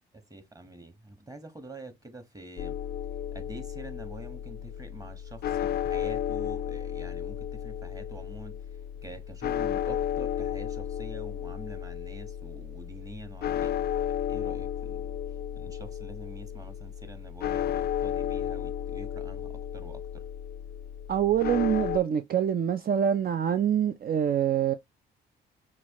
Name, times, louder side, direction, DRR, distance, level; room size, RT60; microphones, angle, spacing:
voice 1, 0.1-2.8 3.3-8.6 9.0-13.8 14.3-15.1 15.5-20.3, right 2 dB, 15° right, 1.4 m, -46 dB
sound 1, 2.6-22.0, left 10 dB, 55° left, 0.4 m, -33 dB
voice 2, 21.1-24.7, right 9 dB, 50° right, 0.5 m, -25 dB
5.9 x 2.4 x 3.0 m
cardioid pair, 90°, 20 cm